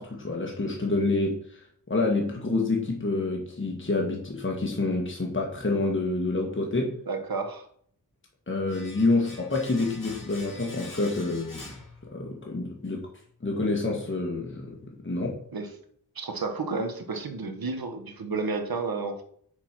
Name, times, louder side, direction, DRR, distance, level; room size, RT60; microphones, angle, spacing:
voice 1, 0.0-7.0 8.5-11.7 12.0-13.1 13.4-15.4, left 2 dB, 35° left, -1 dB, 1.7 m, -28 dB
voice 2, 7.1-7.7 15.5-15.7 16.1-19.2, right 4 dB, 70° right, 6 dB, 1.3 m, -31 dB
Domestic sounds home sounds, 8.7-12.5 12.8-12.9, left 2 dB, 60° left, 3.8 m, -46 dB
6.7 x 4.4 x 6.0 m, 0.63 s
wide cardioid pair, 55°, 36 cm